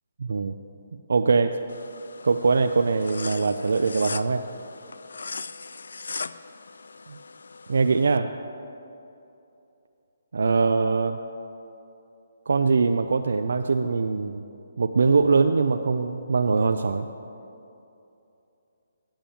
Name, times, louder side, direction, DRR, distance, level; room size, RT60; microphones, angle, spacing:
voice 1, 0.2-0.5 1.1-1.6 2.2-4.4 7.1-7.2 7.7-8.3 10.3-11.2 12.5-14.4 14.8-17.1, right 4 dB, 65° right, 7 dB, 0.4 m, -22 dB
sound 1, 1.7-8.2, left 4 dB, 80° left, 0.3 m, -39 dB
8.8 x 7.5 x 7.0 m, 2.8 s
hypercardioid pair, 175°, 0 cm